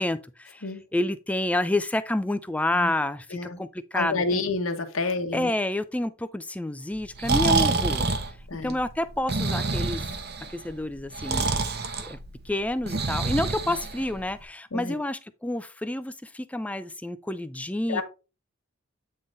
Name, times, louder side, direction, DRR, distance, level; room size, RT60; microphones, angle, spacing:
voice 1, 0.0-4.4 5.0-8.1 8.6-10.1 10.5-11.6 12.0-12.2 12.4-18.0, left 1 dB, 5° left, 0.3 m, -29 dB
voice 2, 3.9-5.5 7.3-7.6 8.5-8.7 14.7-14.9 17.9-18.0, left 3 dB, 75° left, 1.1 m, -29 dB
Breathing, 7.0-14.4, right 3 dB, 50° right, 0.8 m, -27 dB
8.6 x 3.7 x 3.8 m
head